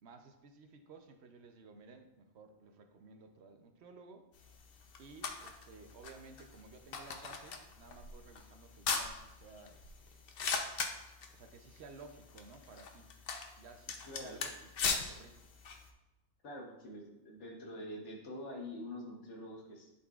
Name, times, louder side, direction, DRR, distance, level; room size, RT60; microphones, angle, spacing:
voice 1, 0.0-4.3 5.0-10.1 11.3-13.1 13.6-15.5, right 4 dB, 70° right, 6 dB, 0.9 m, -55 dB
sound 1, 4.4-15.9, left 5 dB, 60° left, 0.8 m, -41 dB
voice 2, 14.1-14.4 16.4-19.9, left 1 dB, 80° left, 0 dB, 1.4 m, -46 dB
11.0 x 4.1 x 2.4 m, 0.99 s
omnidirectional pair, 1.2 m